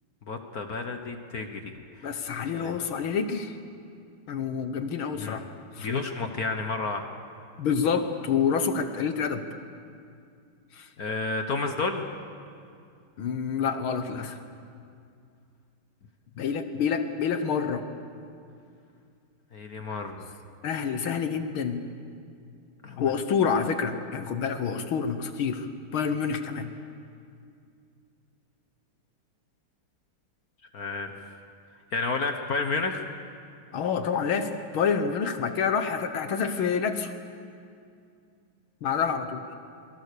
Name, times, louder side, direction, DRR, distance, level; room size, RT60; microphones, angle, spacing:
voice 1, 0.3-2.2 2.5-2.7 5.2-5.4 5.8-7.1 11.0-12.1 19.5-20.3 22.8-23.1 30.7-31.4 31.9-33.1, left 3 dB, 50° left, 5 dB, 1.6 m, -31 dB
voice 2, 2.0-3.6 4.3-5.4 5.8-5.9 7.6-9.4 10.7-10.9 13.2-14.4 16.4-17.8 20.6-21.8 23.0-26.7 33.7-37.1 38.8-39.4, left 6 dB, 70° left, 8 dB, 2.0 m, -28 dB
28.5 x 22.5 x 6.8 m, 2.4 s
omnidirectional pair, 2.4 m